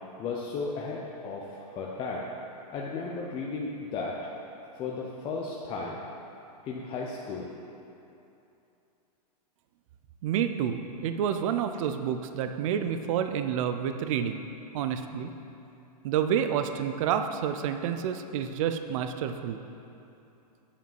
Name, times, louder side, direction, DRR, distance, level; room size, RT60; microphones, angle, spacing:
voice 1, 0.2-2.3 2.7-4.2 4.8-6.0 6.6-7.5, left 4 dB, 25° left, -3 dB, 0.7 m, -34 dB
voice 2, 10.2-14.4 14.7-15.3 16.0-19.6, right 8 dB, 50° right, 8 dB, 0.5 m, -29 dB
8.5 x 5.0 x 7.5 m, 2.8 s
hypercardioid pair, 140°, 21 cm